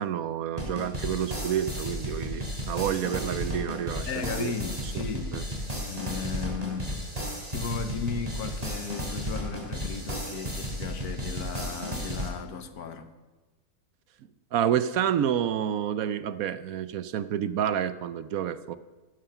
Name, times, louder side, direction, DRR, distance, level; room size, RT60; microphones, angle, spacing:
voice 1, 0.0-4.1 4.4-4.5 4.9-5.0 5.3-5.4 14.5-18.8, right 9 dB, 70° right, 1.0 m, -29 dB
sound 1, 0.6-12.3, equal, 25° right, 3.4 m, -34 dB
voice 2, 4.0-5.3 5.9-6.9 7.2-13.1, left 6 dB, 70° left, 1.6 m, -35 dB
15.0 x 13.0 x 5.8 m
omnidirectional pair, 1.7 m